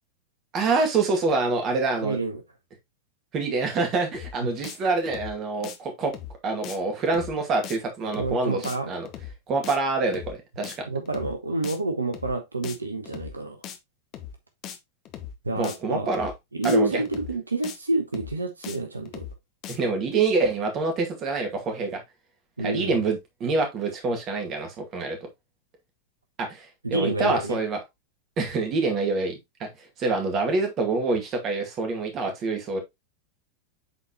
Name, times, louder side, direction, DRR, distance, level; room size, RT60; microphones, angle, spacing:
voice 1, 0.5-2.2 3.3-6.1 6.4-9.1 9.5-10.9 15.6-16.3 16.6-16.9 19.7-22.0 22.6-25.2 26.4-27.8 28.4-29.7 30.0-32.8, right 3 dB, 30° right, 2.1 m, -26 dB
voice 2, 2.0-2.4 8.1-8.9 10.9-13.6 15.4-16.1 16.5-19.3 22.6-23.1 26.8-27.6, right 2 dB, 80° right, 0.9 m, -28 dB
sound 1, 4.1-4.4 4.6-4.8 5.0-5.4 5.6-5.8 6.1-6.4 6.6-6.8 7.0-7.4 7.6-7.8 8.1-8.4 8.6-8.8 9.0-9.4 9.6-9.8 10.1-10.4 10.6-10.8 11.0-11.4 11.6-11.8 12.1-12.4 12.6-12.8 13.0-13.4 13.6-13.8 14.1-14.4 14.6-14.8 15.0-15.4 15.6-15.8 16.1-16.4 16.6-16.8 17.0-17.4 17.6-17.8 18.1-18.4 18.6-18.8 19.0-19.4 19.6-19.8, left 10 dB, 35° left, 1.0 m, -39 dB
8.0 x 4.1 x 2.9 m
figure-of-eight pair, 90°, 0 cm